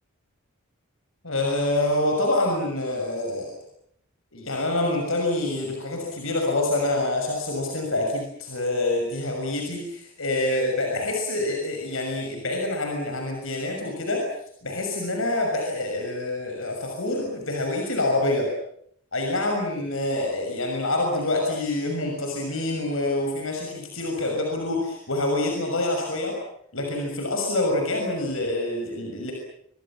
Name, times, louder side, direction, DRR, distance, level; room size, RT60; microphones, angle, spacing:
voice 1, 1.2-3.5 4.3-14.2 14.6-18.5 19.1-26.4 26.7-29.3, left 2 dB, 70° left, 2 dB, 6.6 m, -26 dB
26.5 x 23.5 x 7.4 m, 0.67 s
head